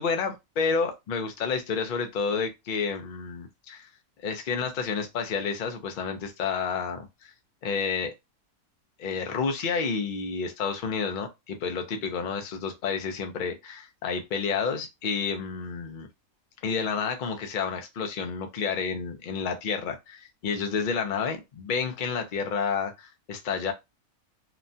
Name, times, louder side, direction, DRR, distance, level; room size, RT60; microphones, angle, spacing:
voice 1, 0.0-3.9 4.2-7.1 7.6-8.1 9.0-16.1 16.6-23.7, left 5 dB, 60° left, 0.5 m, -30 dB
3.0 x 2.2 x 2.6 m
omnidirectional pair, 1.6 m